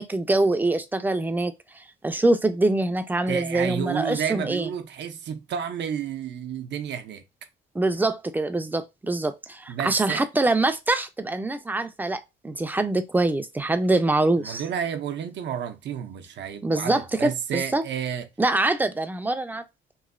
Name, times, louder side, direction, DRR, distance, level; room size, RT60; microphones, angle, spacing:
voice 1, 0.0-1.5 2.0-4.7 7.7-14.6 16.6-17.8 18.4-19.6, right 2 dB, 10° right, 0.4 m, -24 dB
voice 2, 3.3-7.2 9.7-10.3 14.4-18.3, right 8 dB, 65° right, 0.6 m, -31 dB
3.0 x 2.6 x 2.4 m
cardioid pair, 90°, 20 cm